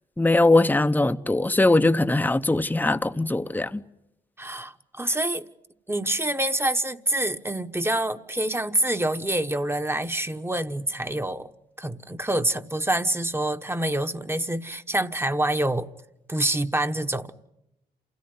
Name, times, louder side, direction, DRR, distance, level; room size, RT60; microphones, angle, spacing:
voice 1, 0.2-3.8, left 2 dB, 10° left, 0.8 m, -21 dB
voice 2, 4.4-5.4 5.9-11.5 11.8-15.9 16.3-17.3, right 1 dB, 15° right, 1.2 m, -26 dB
28.0 x 16.5 x 9.7 m
cardioid pair, 65°, 18 cm